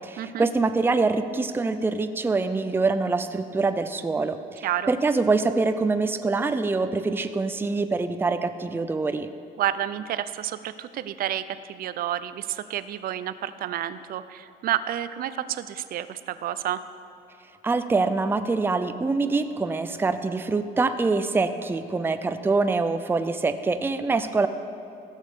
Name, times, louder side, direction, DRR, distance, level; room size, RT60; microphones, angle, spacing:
voice 1, 0.0-9.3 17.6-24.5, right 3 dB, 15° right, 10 dB, 0.5 m, -25 dB
voice 2, 4.6-4.9 9.6-16.8, right 11 dB, 60° right, 14 dB, 0.6 m, -30 dB
15.5 x 6.4 x 6.7 m, 2.5 s
cardioid pair, 110°, 17 cm